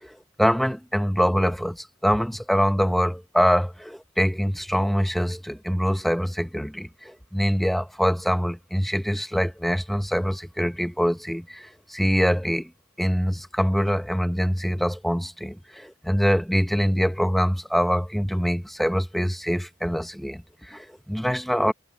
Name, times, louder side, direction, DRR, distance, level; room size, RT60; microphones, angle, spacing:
voice 1, 0.0-12.7 13.0-21.7, equal, ahead, 1.1 m, -24 dB
head